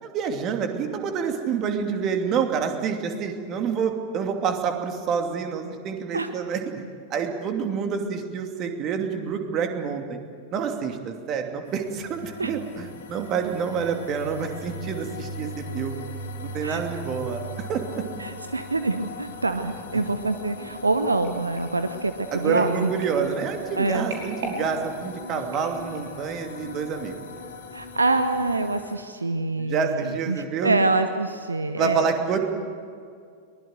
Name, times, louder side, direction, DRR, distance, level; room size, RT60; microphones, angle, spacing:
voice 1, 0.0-6.8 7.1-10.2 10.5-16.0 16.4-18.0 22.3-27.2 29.6-30.8 31.8-32.4, right 6 dB, 35° right, 4 dB, 2.7 m, -28 dB
sound 1, 11.6-28.9, left 1 dB, 65° left, 3.3 m, -39 dB
voice 2, 18.2-22.9 23.8-24.1 27.7-32.1, right 2 dB, 80° right, 10 dB, 0.9 m, -25 dB
sound 2, 21.2-26.3 26.9-27.1 27.4-27.5, right 2 dB, 60° right, 5.5 m, -40 dB
23.0 x 21.0 x 8.0 m, 2.2 s
figure-of-eight pair, 90°, 0 cm